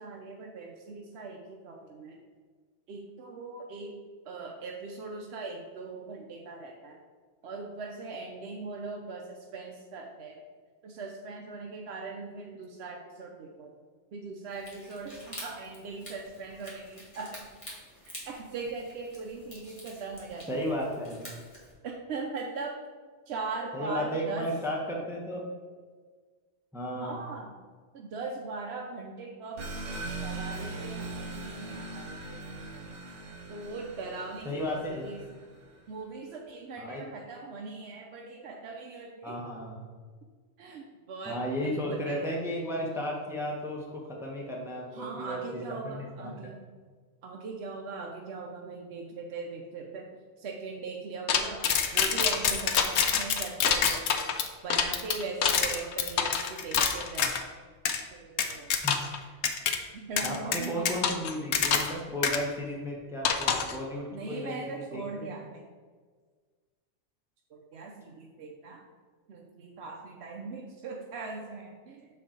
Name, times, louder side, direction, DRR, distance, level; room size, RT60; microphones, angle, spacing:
voice 1, 0.0-2.2 2.9-4.0 4.2-7.0 7.4-10.4 10.8-13.7 14.1-17.4 18.0-20.7 21.8-22.8 23.3-24.5 26.9-27.6 27.9-29.7 30.2-32.8 33.5-35.2 35.9-39.4 40.6-42.4 44.9-46.6 47.2-50.1 50.4-51.7 51.9-54.1 54.6-57.4 58.1-58.7 59.9-60.9 64.1-65.7 67.5-68.9 69.3-72.1, right 4 dB, 70° right, 0 dB, 0.8 m, -40 dB
sound 1, 14.5-21.7, left 1 dB, 30° left, 1.6 m, -48 dB
voice 2, 20.5-21.3 23.7-25.5 26.7-27.2 34.4-35.1 36.8-37.0 39.2-39.8 41.3-46.5 58.8-59.4 60.2-65.4, equal, 5° right, -2 dB, 0.8 m, -34 dB
sound 2, 29.6-35.8, right 3 dB, 85° right, 1.1 m, -40 dB
sound 3, 51.3-57.4 57.9-58.0 58.4-59.2 59.4-59.8 60.2-62.0 62.2-62.4 63.2-63.8, left 7 dB, 70° left, 0.8 m, -26 dB
6.5 x 4.4 x 3.8 m, 1.5 s
omnidirectional pair, 1.2 m